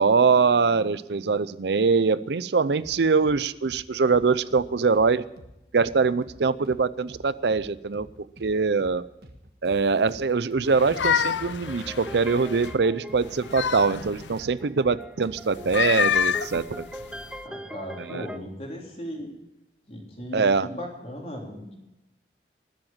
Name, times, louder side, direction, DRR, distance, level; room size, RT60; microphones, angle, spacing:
voice 1, 0.0-5.2 5.7-9.0 9.6-16.8 18.0-18.2 20.3-20.7, right 4 dB, 75° right, 16 dB, 0.5 m, -23 dB
sound 1, 2.8-3.4 3.6-3.8 4.1-5.1 5.4-5.5 5.8-6.8 7.1-7.2 7.5-8.5 8.8-9.0 9.2-10.7 10.9-13.7 13.9-14.1 14.4-16.4, right 1 dB, 60° right, 1.5 m, -48 dB
sound 2, 10.7-12.7 13.2-14.4 15.5-17.4, left 8 dB, 90° left, 0.5 m, -28 dB
sound 3, 11.6-18.4, equal, 5° right, 0.5 m, -42 dB
voice 2, 17.4-19.3 19.9-21.7, equal, 35° left, -1 dB, 3.7 m, -37 dB
20.0 x 7.9 x 7.3 m, 0.93 s
head